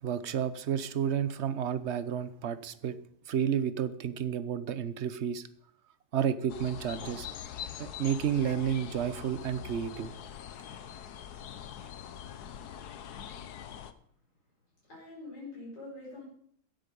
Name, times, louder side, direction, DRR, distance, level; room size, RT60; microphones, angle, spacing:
voice 1, 0.0-3.0 3.3-5.5 6.1-7.3 7.8-10.1, right 8 dB, 50° right, 13 dB, 1.0 m, -31 dB
sound 1, 6.5-13.9, left 9 dB, 70° left, 1.4 m, -43 dB
voice 2, 14.9-16.2, left 2 dB, 90° left, -6 dB, 6.3 m, -44 dB
15.5 x 10.5 x 5.3 m, 0.64 s
omnidirectional pair, 1.8 m